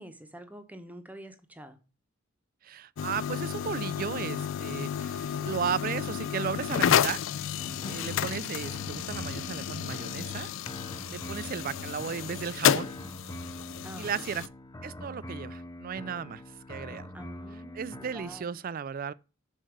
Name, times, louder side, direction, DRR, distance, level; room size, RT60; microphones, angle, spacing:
voice 1, 0.0-1.8 7.8-8.3 13.8-14.5 17.1-18.6, equal, 10° right, 0.9 m, -47 dB
voice 2, 2.6-7.2 7.9-10.5 11.1-12.9 14.0-14.5 14.8-16.4 16.7-17.1 17.7-19.1, right 7 dB, 45° right, 0.4 m, -35 dB
sound 1, 3.0-14.5, left 9 dB, 70° left, 0.4 m, -31 dB
sound 2, 7.6-18.4, left 1 dB, 20° left, 0.7 m, -44 dB
6.4 x 4.6 x 6.2 m
head